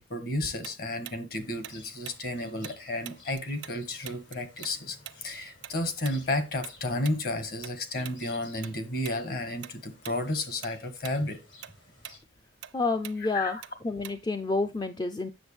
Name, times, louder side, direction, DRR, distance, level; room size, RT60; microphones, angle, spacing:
voice 1, 0.0-11.4 13.2-13.6, left 1 dB, 50° left, 1.4 m, -32 dB
Tick-tock, 0.6-3.8 4.0-8.8 9.0-9.2 9.6-10.2 10.5-14.5, right 11 dB, 70° right, 0.5 m, -45 dB
sound 1, 1.4-12.2, left 3 dB, 80° left, 3.4 m, -55 dB
voice 2, 12.7-13.6 13.8-15.3, left 3 dB, 20° left, 0.4 m, -29 dB
7.9 x 6.7 x 3.2 m
head